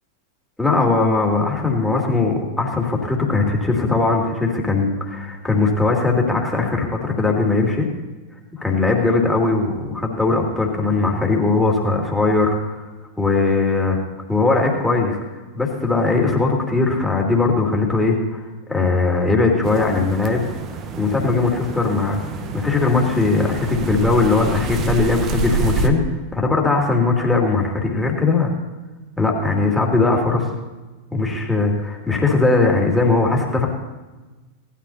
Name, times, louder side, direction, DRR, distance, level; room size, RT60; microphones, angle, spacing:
voice 1, 0.6-7.9 8.6-12.8 13.2-14.0 14.3-15.2 15.5-18.4 18.7-20.4 21.0-22.2 22.5-26.0 26.3-28.5 29.2-30.5 31.1-33.7, left 3 dB, 5° left, -1 dB, 2.7 m, -19 dB
sound 1, 19.6-25.9, right 4 dB, 30° right, 1.1 m, -27 dB
18.5 x 13.0 x 2.9 m, 1.2 s
figure-of-eight pair, 90°, 0 cm